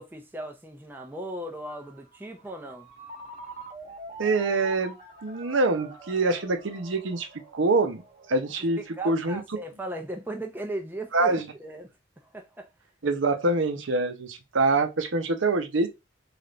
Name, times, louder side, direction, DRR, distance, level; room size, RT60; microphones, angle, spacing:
voice 1, 0.0-2.9 8.8-11.9 12.2-12.7, right 1 dB, 10° right, 0.5 m, -37 dB
Ringtone, 1.7-9.2, right 2 dB, 40° right, 1.0 m, -45 dB
voice 2, 4.2-4.9 5.2-7.3 7.5-8.0 8.3-8.8 9.0-9.4 11.1-11.4 13.0-15.9, right 3 dB, 85° right, 0.7 m, -25 dB
3.3 x 2.5 x 3.8 m
head